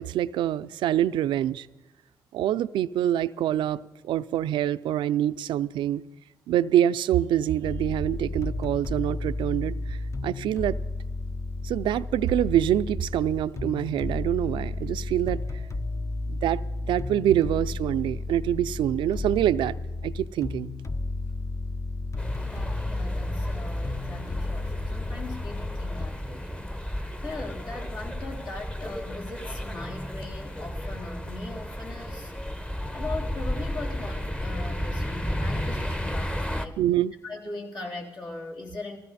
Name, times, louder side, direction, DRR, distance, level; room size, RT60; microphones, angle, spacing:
voice 1, 0.0-1.7 2.3-6.0 6.5-10.8 11.6-15.4 16.3-19.8 20.0-20.7 36.8-37.1, right 11 dB, 80° right, 0.4 m, -25 dB
sound 1, 7.6-26.1, left 2 dB, 35° left, 1.1 m, -32 dB
sound 2, 22.2-36.7, equal, 10° left, 1.1 m, -33 dB
voice 2, 22.4-32.3 32.9-36.8 37.2-39.0, left 2 dB, 60° left, 3.7 m, -39 dB
19.5 x 15.5 x 4.2 m
supercardioid pair, 55°, 8 cm